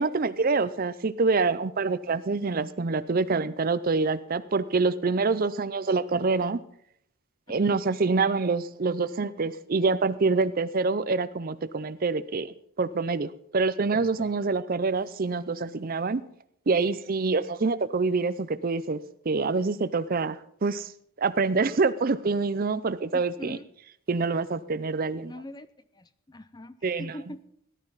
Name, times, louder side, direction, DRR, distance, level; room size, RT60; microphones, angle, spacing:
voice 1, 0.0-6.6 7.5-16.2 16.7-20.9 21.2-23.6 24.1-25.3 26.8-27.2, right 4 dB, 40° right, 15 dB, 0.5 m, -26 dB
voice 2, 23.1-23.7 25.3-25.7 25.9-27.4, left 1 dB, 20° left, 13 dB, 0.5 m, -43 dB
18.0 x 12.0 x 4.0 m, 0.69 s
head